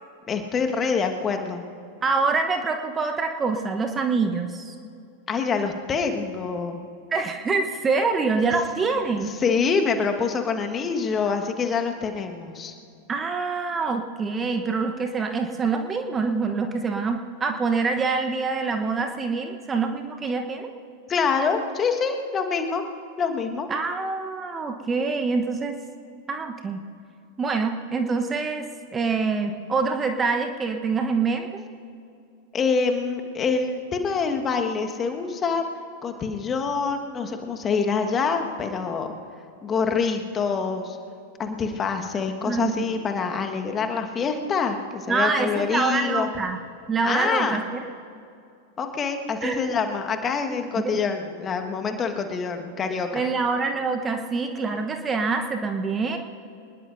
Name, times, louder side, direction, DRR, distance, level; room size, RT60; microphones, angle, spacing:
voice 1, 0.3-1.6 5.3-6.8 9.4-12.7 21.1-22.8 23.2-23.7 32.5-35.6 36.0-39.1 39.6-41.0 41.4-46.3 47.0-47.6 48.8-53.3, left 5 dB, 25° left, 4 dB, 1.5 m, -26 dB
voice 2, 2.0-4.7 7.1-9.3 13.1-20.7 23.7-25.8 26.3-26.8 27.4-28.7 28.9-31.6 42.5-42.8 45.1-46.6 46.9-47.8 49.4-49.6 50.6-51.0 53.1-56.2, right 4 dB, 20° right, 6 dB, 1.0 m, -25 dB
25.5 x 20.0 x 2.7 m, 2.5 s
figure-of-eight pair, 90°, 0 cm